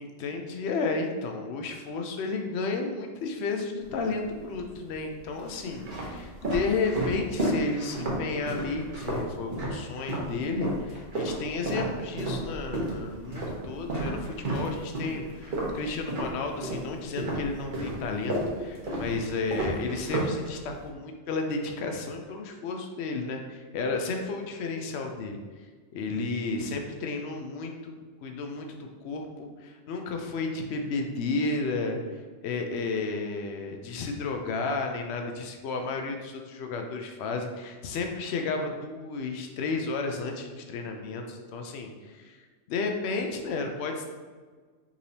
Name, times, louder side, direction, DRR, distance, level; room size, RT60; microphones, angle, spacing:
voice 1, 0.0-25.7 25.9-44.1, left 3 dB, 75° left, 3 dB, 0.8 m, -32 dB
sound 1, 3.8-4.5 5.2-10.3 10.6-16.9 17.2-20.9, right 1 dB, 50° right, 1.0 m, -32 dB
5.0 x 3.3 x 2.7 m, 1.5 s
omnidirectional pair, 1.1 m